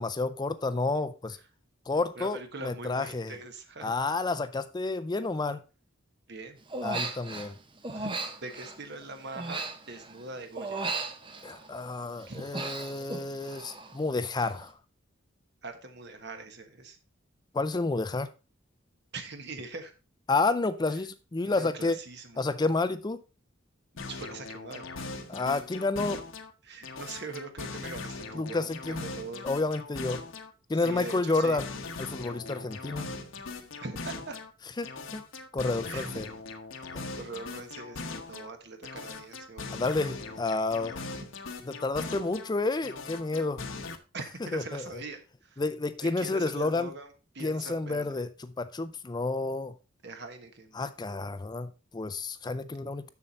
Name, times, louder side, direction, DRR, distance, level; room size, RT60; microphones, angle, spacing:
voice 1, 0.0-1.4 1.9-3.4 3.8-5.6 6.8-7.5 11.4-14.7 17.5-18.3 20.3-22.0 22.4-23.2 25.3-26.2 28.3-29.0 29.4-30.2 30.7-31.7 32.0-33.1 34.8-35.2 35.5-36.3 36.9-37.1 39.7-41.0 41.7-43.7 44.5-45.0 45.6-46.9 47.4-49.7 50.7-53.1, left 3 dB, 20° left, 0.4 m, -30 dB
voice 2, 2.1-3.9 6.3-6.6 7.9-8.1 8.4-10.8 12.3-12.4 14.4-14.5 15.6-17.0 19.1-19.9 21.4-22.4 24.0-24.9 26.6-29.4 30.7-31.6 33.8-34.4 35.8-36.1 37.1-38.0 38.3-39.8 44.1-45.6 46.0-47.1 47.3-48.2 50.0-50.8, right 3 dB, 55° right, 1.3 m, -42 dB
Human voice, 6.7-7.5 7.8-10.2 10.6-11.8 12.2-14.0 14.2-14.6, right 3 dB, 25° right, 0.9 m, -36 dB
sound 1, 24.0-26.5 26.8-30.5 30.8-34.5 34.8-38.5 38.8-42.5 42.8-44.0, left 3 dB, 75° left, 1.1 m, -40 dB
7.2 x 6.7 x 4.1 m
head